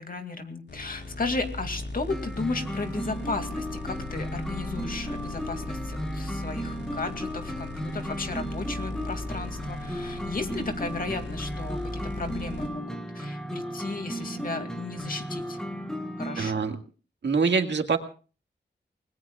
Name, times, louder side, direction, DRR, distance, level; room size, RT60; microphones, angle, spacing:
voice 1, 0.0-15.6 16.2-16.6, left 3 dB, 50° left, 6 dB, 2.4 m, -34 dB
sound 1, 0.7-12.7, left 3 dB, 70° left, 4.3 m, -38 dB
sound 2, 2.1-16.5, right 1 dB, 5° left, 1.3 m, -35 dB
voice 2, 16.4-16.7 17.2-18.0, right 5 dB, 80° right, 4 dB, 1.9 m, -24 dB
29.5 x 20.0 x 2.4 m, 0.38 s
wide cardioid pair, 125°, 18 cm